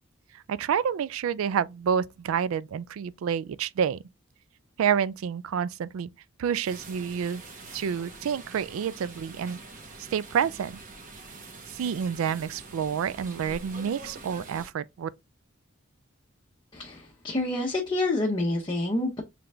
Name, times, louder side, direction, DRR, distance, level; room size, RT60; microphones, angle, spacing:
voice 1, 0.3-4.0 4.8-6.1 6.4-7.4 7.7-9.6 10.1-10.8 11.7-15.1, right 7 dB, 85° right, 0.3 m, -28 dB
sound 1, 6.6-14.7, right 3 dB, 40° right, 1.0 m, -45 dB
voice 2, 16.7-19.2, left 2 dB, 25° left, 0.7 m, -28 dB
3.8 x 3.3 x 3.3 m
head